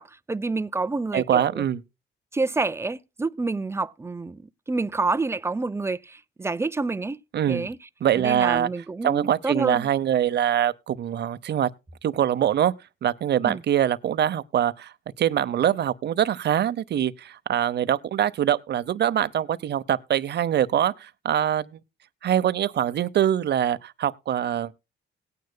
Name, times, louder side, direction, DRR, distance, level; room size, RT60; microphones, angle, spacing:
voice 1, 0.0-1.6 2.3-7.2 7.5-7.8 8.2-9.9 13.4-13.6, right 3 dB, 15° right, 0.5 m, -28 dB
voice 2, 1.1-1.8 7.3-7.7 8.0-8.7 9.0-11.7 12.0-12.7 13.0-21.8 22.2-24.7, right 10 dB, 60° right, 0.8 m, -24 dB
18.5 x 9.5 x 2.2 m
cardioid pair, 90°, 20 cm